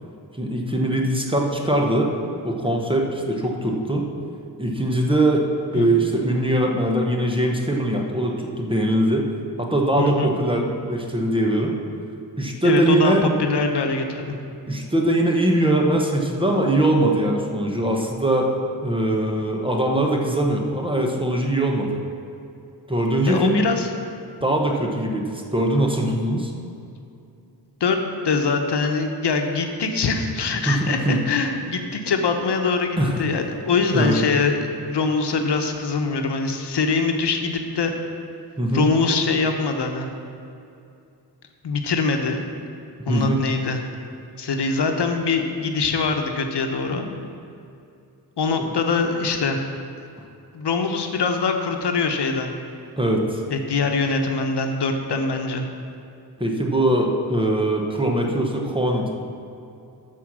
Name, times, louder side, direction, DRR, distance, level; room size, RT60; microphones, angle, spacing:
voice 1, 0.3-2.1 2.4-4.1 4.6-5.5 5.7-9.3 9.6-11.7 12.4-13.2 14.7-18.5 18.8-22.0 22.9-23.6 24.4-26.5 30.6-31.2 33.0-33.2 33.9-34.2 38.6-38.9 43.1-43.4 53.0-53.4 56.4-59.2, right 1 dB, 15° right, 0 dB, 1.1 m, -21 dB
voice 2, 10.0-10.3 12.6-14.4 23.3-23.9 27.8-28.0 28.2-37.9 38.7-40.1 41.6-42.4 43.1-43.8 44.4-47.0 48.4-49.6 50.5-52.5 53.5-55.7, left 4 dB, 80° left, 5 dB, 1.0 m, -23 dB
13.5 x 4.5 x 6.3 m, 2.6 s
wide cardioid pair, 125°, 40 cm